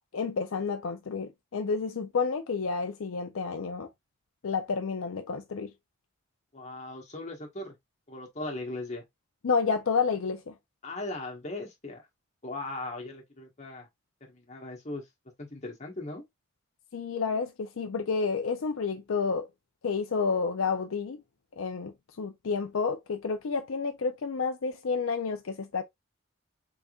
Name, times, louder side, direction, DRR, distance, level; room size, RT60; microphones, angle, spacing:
voice 1, 0.1-3.9 4.4-5.7 9.4-10.5 16.9-19.5 19.8-21.2 21.6-25.8, left 5 dB, 70° left, 0.5 m, -30 dB
voice 2, 6.5-7.7 8.1-9.0 10.8-12.0 12.4-13.9 14.3-15.0 15.4-16.2, left 2 dB, 30° left, 1.3 m, -38 dB
4.0 x 3.6 x 2.3 m
head